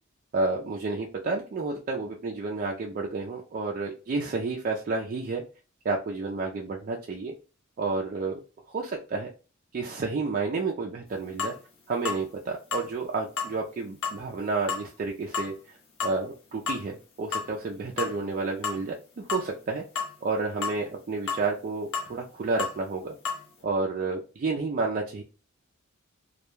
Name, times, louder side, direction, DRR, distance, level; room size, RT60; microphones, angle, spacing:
voice 1, 0.3-5.4 5.8-7.3 7.8-8.4 8.7-9.3 9.7-11.5 11.9-19.8 20.2-23.1 23.6-25.2, right 3 dB, 40° right, 0 dB, 0.3 m, -30 dB
sound 1, 11.4-11.6 12.0-12.2 12.7-12.9 13.4-13.5 14.0-14.2 14.7-14.9 15.3-15.5 16.0-16.2 16.7-16.8 17.3-17.5 18.0-18.3 18.6-18.8 19.3-19.5 19.9-20.1 20.6-20.8 21.3-21.4 21.9-22.1 22.6-22.8 23.2-23.4, left 5 dB, 70° left, 0.7 m, -31 dB
2.2 x 2.1 x 3.0 m, 0.33 s
head